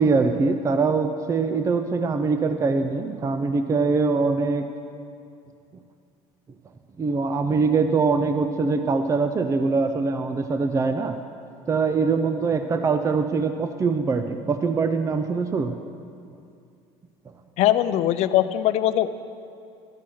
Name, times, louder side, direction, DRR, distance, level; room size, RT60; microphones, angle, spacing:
voice 1, 0.0-4.6 7.0-11.2 11.7-15.8, right 4 dB, 25° right, 8 dB, 0.5 m, -23 dB
voice 2, 17.6-19.1, left 13 dB, 55° left, 13 dB, 0.5 m, -21 dB
12.5 x 5.7 x 6.3 m, 2.4 s
supercardioid pair, 105°, 13 cm